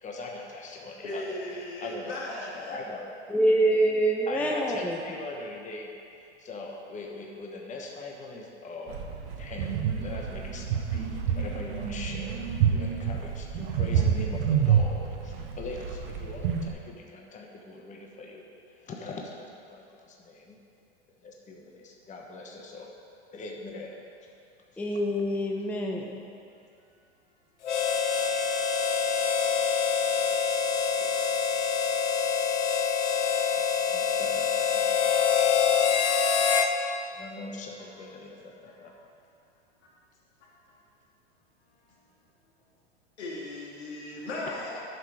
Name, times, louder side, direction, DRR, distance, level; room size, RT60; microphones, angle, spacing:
voice 1, 0.0-3.1 4.3-5.9 6.2-9.0 9.4-12.4 12.7-18.5 18.8-20.5 21.1-24.1 24.9-25.0 31.0-31.1 33.5-33.6 33.9-35.2 37.2-38.9, left 3 dB, 20° left, 0 dB, 1.2 m, -41 dB
voice 2, 1.0-2.8 28.2-28.6 29.2-29.5 29.8-30.0 35.1-35.2 38.7-38.9 40.7-40.8 43.2-44.8, left 1 dB, 75° left, -4 dB, 2.6 m, -38 dB
voice 3, 3.3-5.0 24.8-26.2, right 1 dB, 5° left, 0 dB, 0.7 m, -25 dB
sound 1, 8.9-16.7, right 7 dB, 55° right, 1.2 m, -28 dB
Harmonica, 27.6-36.7, left 6 dB, 90° left, 0.8 m, -25 dB
11.0 x 6.6 x 4.9 m, 2.5 s
hypercardioid pair, 105°, 34 cm